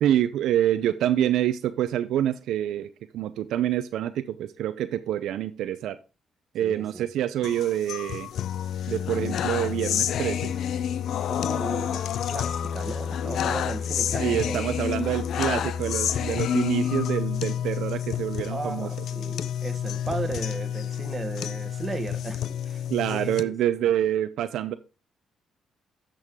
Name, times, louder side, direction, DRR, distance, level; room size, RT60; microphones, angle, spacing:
voice 1, 0.0-2.9 3.1-6.0 6.5-8.3 8.9-10.5 14.2-18.9 22.9-24.7, right 11 dB, 80° right, 0.5 m, -26 dB
voice 2, 6.6-7.1 11.3-14.6 18.5-23.5, right 3 dB, 25° right, 1.4 m, -36 dB
sound 1, 7.4-23.4, left 9 dB, 70° left, 0.5 m, -29 dB
12.0 x 6.4 x 3.6 m
cardioid pair, 90°, 0 cm